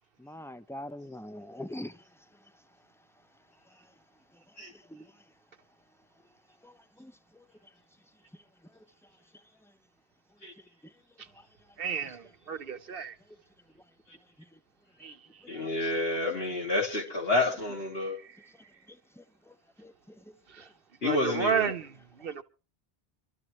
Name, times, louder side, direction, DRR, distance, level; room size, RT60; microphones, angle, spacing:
voice 1, 0.2-1.9 4.9-5.0 7.0-7.1 19.8-19.9, left 1 dB, 5° left, 0.5 m, -41 dB
voice 2, 11.8-13.2 15.0-15.4 18.2-18.4 20.5-20.7 21.0-22.4, right 7 dB, 65° right, 1.2 m, -33 dB
voice 3, 15.5-18.2 21.0-21.7, left 2 dB, 70° left, 3.5 m, -29 dB
25.0 x 13.0 x 3.1 m
omnidirectional pair, 1.0 m